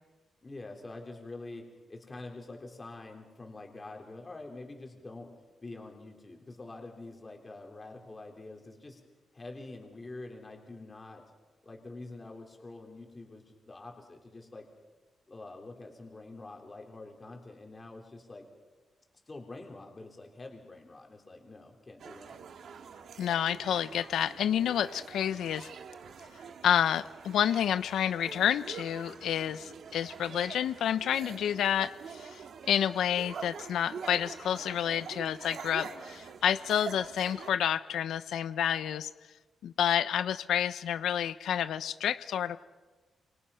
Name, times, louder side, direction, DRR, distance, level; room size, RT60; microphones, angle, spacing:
voice 1, 0.4-5.3 5.6-9.0 9.3-11.2 11.6-14.7 15.3-18.5 19.3-22.4, left 2 dB, 20° left, 2 dB, 3.7 m, -46 dB
sound 1, 22.0-37.5, right 6 dB, 55° right, 1.7 m, -45 dB
voice 2, 23.2-25.7 26.6-39.1 39.6-42.6, left 9 dB, 90° left, 12 dB, 0.7 m, -29 dB
29.0 x 27.0 x 5.7 m, 1.3 s
wide cardioid pair, 180°, 0 cm